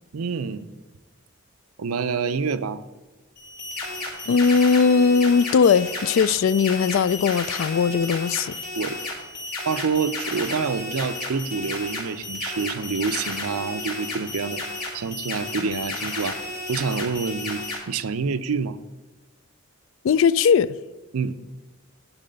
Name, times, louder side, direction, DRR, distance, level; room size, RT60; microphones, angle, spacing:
voice 1, 0.1-0.7 1.8-2.8 8.7-9.0 9.7-14.6 14.9-16.4 16.7-18.8 21.1-21.3, right 5 dB, 90° right, 0.5 m, -27 dB
sound 1, 3.4-17.8, left 2 dB, 45° left, 2.7 m, -33 dB
voice 2, 4.3-8.6 20.0-20.8, left 6 dB, 65° left, 0.3 m, -19 dB
11.5 x 4.2 x 6.7 m
head